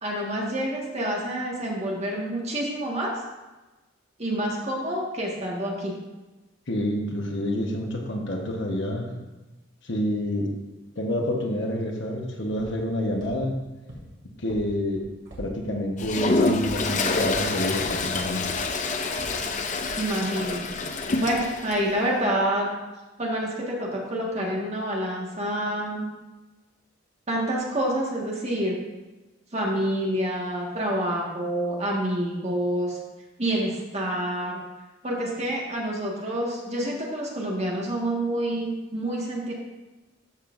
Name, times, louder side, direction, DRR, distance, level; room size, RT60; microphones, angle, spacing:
voice 1, 0.0-3.1 4.2-5.9 20.0-20.6 21.2-22.7 23.2-26.1 27.3-28.7 29.5-33.0 33.4-34.6 35.0-39.5, right 1 dB, 35° right, -2 dB, 1.6 m, -27 dB
voice 2, 6.7-9.2 9.8-10.5 11.0-13.6 14.4-15.0 15.4-18.5, left 1 dB, 65° left, 1 dB, 1.2 m, -28 dB
sound 1, 12.6-12.7 13.2-13.3 13.9-14.0 14.5-14.6 15.0-15.4 16.0-16.1 16.6-16.7 17.2-17.3 17.8-17.9 18.5-18.6 19.2-19.3 19.8-19.9, right 1 dB, 60° right, 2.4 m, -43 dB
Toilet flush, 16.0-21.8, left 3 dB, 40° left, 0.6 m, -27 dB
13.0 x 5.9 x 2.6 m, 1.1 s
head